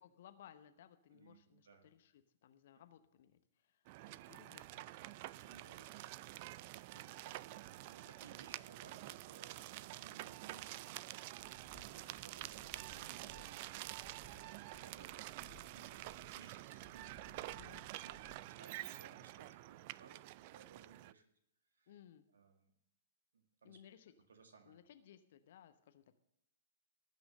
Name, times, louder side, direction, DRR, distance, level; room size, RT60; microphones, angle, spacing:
voice 1, 0.0-6.5 6.9-7.7 8.0-8.3 17.6-17.9 21.9-22.2 23.6-24.1 24.6-26.2, left 10 dB, 50° left, 9 dB, 0.9 m, -62 dB
voice 2, 1.1-1.9 5.4-5.9 6.9-7.5 7.9-17.8 18.0-21.2 21.7-21.9 22.3-22.7 23.3-23.8 24.3-24.8, right 5 dB, 65° right, 5 dB, 2.0 m, -62 dB
sound 1, 3.9-21.1, right 17 dB, 40° right, 0.4 m, -49 dB
sound 2, 11.4-18.4, left 2 dB, ahead, 3.0 m, -63 dB
18.5 x 6.1 x 6.4 m, 0.76 s
figure-of-eight pair, 110°, 0 cm